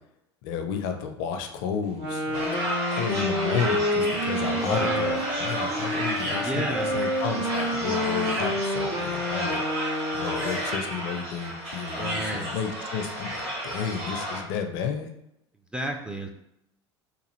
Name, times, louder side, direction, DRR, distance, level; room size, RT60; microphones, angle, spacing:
voice 1, 0.4-6.6 6.9-9.6 10.1-15.1, left 6 dB, 55° left, 6 dB, 0.4 m, -32 dB
Wind instrument woodwind instrument, 1.9-10.8, left 1 dB, 75° right, 1.2 m, -29 dB
sound 1, 2.3-14.4, equal, 45° right, 1.5 m, -32 dB
voice 2, 4.5-5.1 6.4-7.0 12.0-12.6 15.7-16.3, right 1 dB, 5° right, 2 dB, 0.3 m, -32 dB
3.0 x 2.4 x 3.0 m, 0.81 s
figure-of-eight pair, 75°, 15 cm